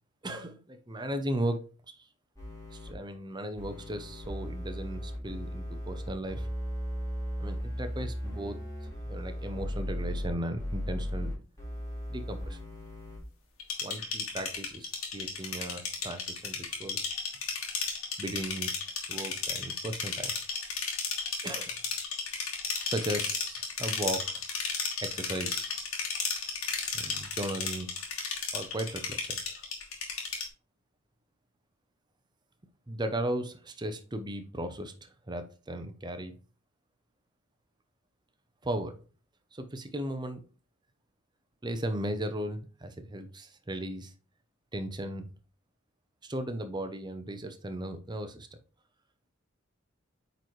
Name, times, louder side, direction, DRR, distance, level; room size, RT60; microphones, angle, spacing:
voice 1, 0.2-2.1 2.7-6.5 7.4-8.6 9.1-11.3 12.1-12.6 13.8-17.0 18.2-18.7 19.1-20.4 21.4-21.7 22.8-24.3 25.0-25.8 26.9-27.9 28.5-29.6 32.9-36.3 38.6-39.0 39.5-40.4 41.6-44.1 44.7-45.3 46.2-48.5, right 1 dB, 20° right, 8 dB, 0.7 m, -36 dB
sound 1, 2.4-2.9 3.6-13.2, equal, 15° left, 3.4 m, -36 dB
sound 2, 13.6-30.5, left 5 dB, 80° left, 1.9 m, -34 dB
8.7 x 4.0 x 3.2 m, 0.36 s
head